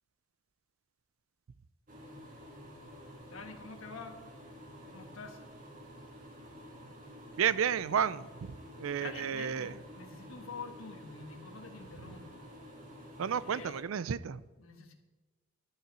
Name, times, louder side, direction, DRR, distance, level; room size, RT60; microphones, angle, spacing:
sound 1, 1.9-13.8, equal, 40° right, 1.9 m, -50 dB
voice 1, 3.3-4.3 4.9-5.4 9.0-12.4 13.4-13.9 14.6-14.9, left 4 dB, 85° left, 5 dB, 1.4 m, -47 dB
voice 2, 7.4-9.7 13.2-14.4, right 8 dB, 85° right, 17 dB, 0.4 m, -32 dB
12.0 x 5.6 x 7.3 m, 1.2 s
head